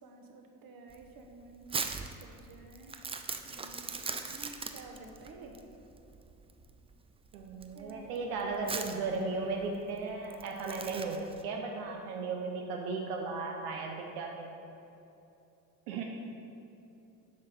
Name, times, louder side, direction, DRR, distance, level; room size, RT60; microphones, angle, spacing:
voice 1, 0.0-1.9 2.2-2.9 3.4-5.5 7.7-8.1, right 3 dB, 50° right, 3 dB, 1.1 m, -51 dB
Crumpling crinkling, 0.9-11.4, right 4 dB, 15° right, 0.3 m, -41 dB
voice 2, 7.3-14.6 15.9-16.0, right 4 dB, 90° right, 1 dB, 0.6 m, -36 dB
7.1 x 5.0 x 4.2 m, 2.9 s
hypercardioid pair, 65°, 43 cm